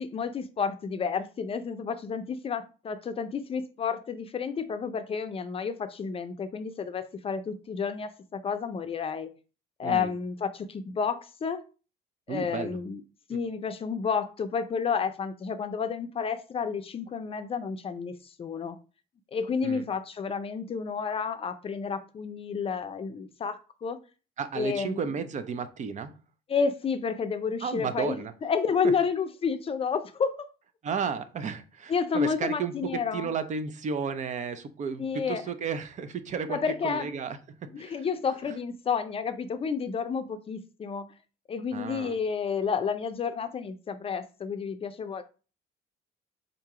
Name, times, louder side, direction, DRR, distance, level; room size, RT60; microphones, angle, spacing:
voice 1, 0.0-9.3 9.8-11.6 12.3-13.0 13.3-18.8 19.3-24.0 24.5-25.0 26.5-28.2 28.4-30.5 31.9-33.3 35.0-35.4 36.5-37.1 37.7-41.1 41.5-45.2, left 6 dB, 35° left, 0.5 m, -30 dB
voice 2, 12.3-12.8 19.6-19.8 24.4-26.1 27.6-28.3 30.8-36.6 36.8-38.0 41.7-42.2, right 6 dB, 45° right, 0.6 m, -33 dB
3.8 x 2.8 x 4.8 m
cardioid pair, 110°, 17 cm